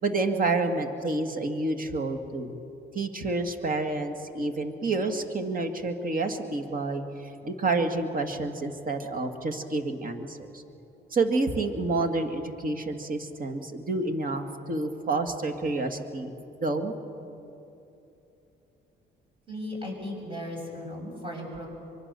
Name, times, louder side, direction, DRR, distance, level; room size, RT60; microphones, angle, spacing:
voice 1, 0.0-2.6 2.9-10.6 11.1-16.3 16.6-16.9, right 3 dB, 45° right, 5 dB, 2.2 m, -29 dB
voice 2, 19.5-21.7, left 1 dB, 25° right, 0 dB, 7.4 m, -36 dB
24.5 x 23.0 x 6.9 m, 2.9 s
cardioid pair, 90°, 20 cm